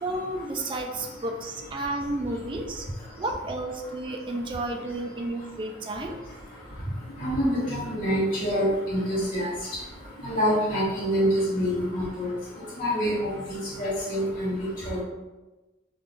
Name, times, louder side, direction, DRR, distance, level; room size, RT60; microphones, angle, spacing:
voice 1, 0.0-2.8 3.2-6.2, right 2 dB, 25° right, 2 dB, 0.3 m, -32 dB
voice 2, 7.2-9.5 10.2-12.3 12.8-13.1 13.5-14.5 14.9-15.0, equal, 45° left, -8 dB, 1.0 m, -26 dB
2.4 x 2.3 x 3.6 m, 1.1 s
head